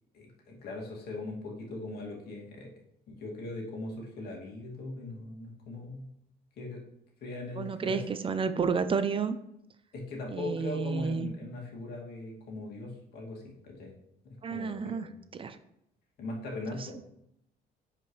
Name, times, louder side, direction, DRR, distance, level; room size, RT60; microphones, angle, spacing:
voice 1, 0.1-2.7 3.1-6.1 6.6-6.8 7.2-8.0 9.9-13.9 14.2-15.2 16.2-17.0, left 2 dB, 70° left, -1 dB, 2.4 m, -40 dB
voice 2, 7.6-9.4 10.3-11.3 14.4-15.6, right 5 dB, 30° right, 11 dB, 0.6 m, -31 dB
10.5 x 5.0 x 3.2 m, 0.79 s
cardioid pair, 110°, 17 cm